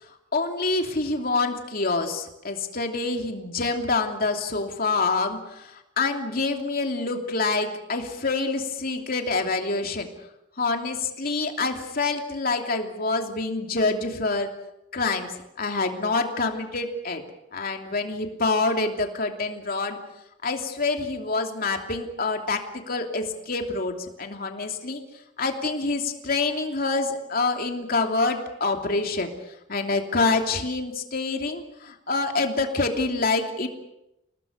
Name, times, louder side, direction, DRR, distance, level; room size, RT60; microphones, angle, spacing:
voice 1, 0.3-10.1 10.6-14.5 14.9-15.3 15.6-17.2 17.5-20.0 20.4-25.0 25.4-29.3 29.7-33.7, left 3 dB, 50° left, 4 dB, 3.0 m, -26 dB
29.5 x 19.0 x 6.7 m, 0.87 s
head